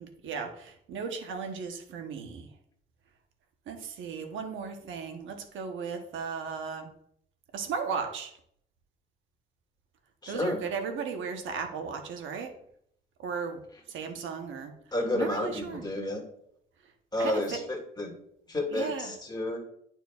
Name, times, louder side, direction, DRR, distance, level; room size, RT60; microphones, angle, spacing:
voice 1, 0.0-2.5 3.7-6.9 7.5-8.3 10.3-12.6 13.2-13.6 13.9-14.7 15.1-15.8 16.8-16.9 17.2-17.6 18.7-19.1, right 5 dB, 75° right, 5 dB, 1.0 m, -36 dB
voice 2, 10.2-10.6 14.9-16.2 17.1-18.1 18.5-19.6, left 1 dB, 20° left, 1 dB, 2.0 m, -31 dB
11.0 x 4.5 x 2.4 m, 0.68 s
cardioid pair, 90°, 20 cm